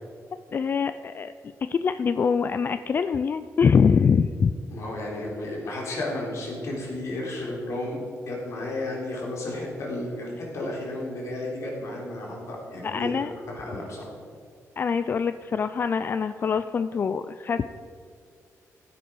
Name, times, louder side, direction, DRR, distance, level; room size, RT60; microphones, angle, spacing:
voice 1, 0.5-1.3 1.6-4.5 12.8-13.3 14.8-17.6, left 6 dB, 40° left, 11 dB, 0.3 m, -24 dB
voice 2, 4.7-14.1, left 1 dB, 60° left, -3 dB, 3.8 m, -33 dB
15.5 x 9.2 x 4.7 m, 2.3 s
wide cardioid pair, 145°, 6 cm